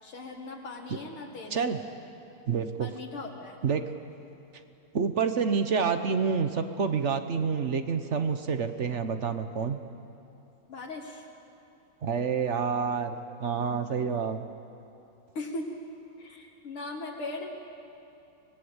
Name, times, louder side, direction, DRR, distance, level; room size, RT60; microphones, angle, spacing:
voice 1, 0.0-1.7 2.8-3.6 10.7-11.2 15.3-15.8 16.2-17.6, left 2 dB, 75° left, 0 dB, 2.7 m, -39 dB
voice 2, 2.5-2.9 3.6-3.8 4.9-9.8 12.0-14.4, right 6 dB, 50° right, 9 dB, 0.9 m, -28 dB
25.0 x 20.5 x 8.1 m, 2.7 s
omnidirectional pair, 2.4 m